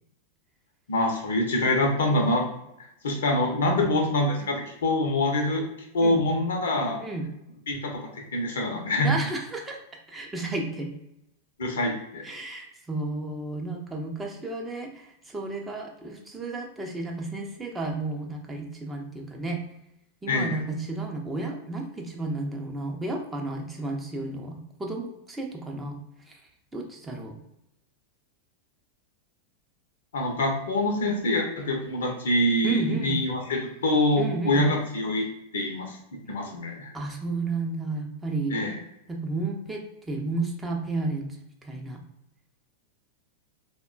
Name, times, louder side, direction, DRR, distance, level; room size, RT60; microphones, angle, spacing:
voice 1, 0.9-2.5 3.0-5.6 5.9-7.0 7.7-8.0 8.3-9.1 11.6-12.3 20.3-20.6 30.1-35.3 35.5-36.0 36.3-36.9 38.5-38.7, left 1 dB, 65° left, 2 dB, 0.6 m, -25 dB
voice 2, 7.0-7.3 9.0-9.8 10.1-10.9 12.2-19.6 20.2-26.0 26.3-26.4 26.7-27.4 32.6-33.2 34.2-34.7 36.9-38.6 39.1-41.4 41.6-42.0, right 3 dB, 10° right, 1 dB, 0.5 m, -32 dB
3.5 x 2.1 x 2.3 m, 0.84 s
figure-of-eight pair, 90°, 0 cm